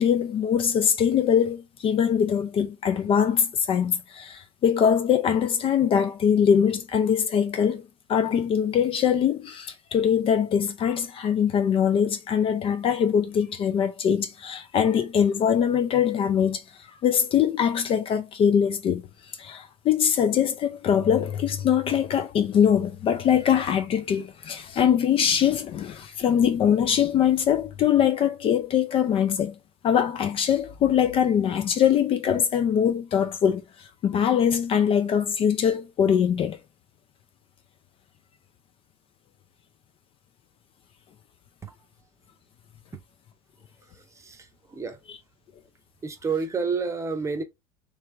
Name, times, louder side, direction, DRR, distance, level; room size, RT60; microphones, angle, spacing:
voice 1, 0.0-16.6 17.0-19.0 19.4-29.6 29.8-36.6, left 8 dB, 35° left, 0.5 m, -22 dB
voice 2, 43.9-45.0 46.0-47.4, right 5 dB, 20° right, 0.8 m, -30 dB
3.3 x 3.2 x 3.2 m
figure-of-eight pair, 70°, 16 cm